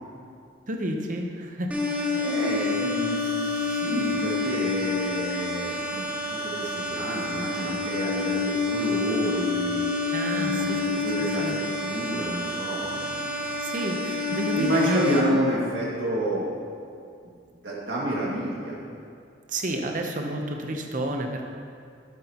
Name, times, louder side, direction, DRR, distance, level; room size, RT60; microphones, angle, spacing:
voice 1, 0.7-1.7 10.1-11.6 13.6-15.4 19.5-21.5, right 1 dB, 40° right, 2 dB, 0.8 m, -31 dB
sound 1, 1.7-15.2, left 3 dB, 5° right, 0.7 m, -28 dB
voice 2, 2.1-13.5 14.3-16.5 17.6-18.8, equal, 65° right, -5 dB, 2.1 m, -29 dB
12.0 x 8.4 x 3.0 m, 2.3 s
head